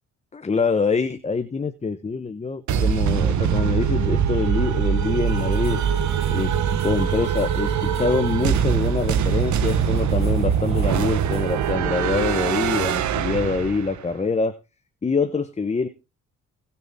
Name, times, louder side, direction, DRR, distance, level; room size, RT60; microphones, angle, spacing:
voice 1, 0.3-5.8 6.3-14.5 15.0-15.9, left 4 dB, 20° left, 9 dB, 1.0 m, -25 dB
sound 1, 2.7-14.1, right 8 dB, 70° right, 1.0 m, -22 dB
sound 2, 5.3-11.8, right 1 dB, 20° right, 8.0 m, -44 dB
17.5 x 6.9 x 3.6 m, 0.29 s
cardioid pair, 90°, 30 cm